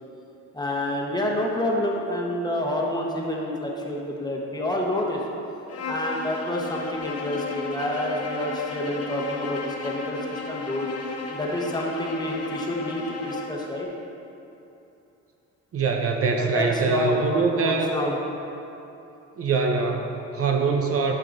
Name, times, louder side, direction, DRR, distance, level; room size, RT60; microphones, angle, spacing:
voice 1, 0.5-5.2 5.9-10.9 11.3-13.9 16.3-18.1, left 1 dB, 15° left, -2 dB, 1.1 m, -28 dB
Bowed string instrument, 5.7-13.6, left 4 dB, 55° left, 0.9 m, -34 dB
voice 2, 15.7-17.9 19.4-21.1, right 4 dB, 50° right, 2 dB, 0.7 m, -23 dB
11.0 x 5.5 x 2.6 m, 2.8 s
cardioid pair, 90°, 30 cm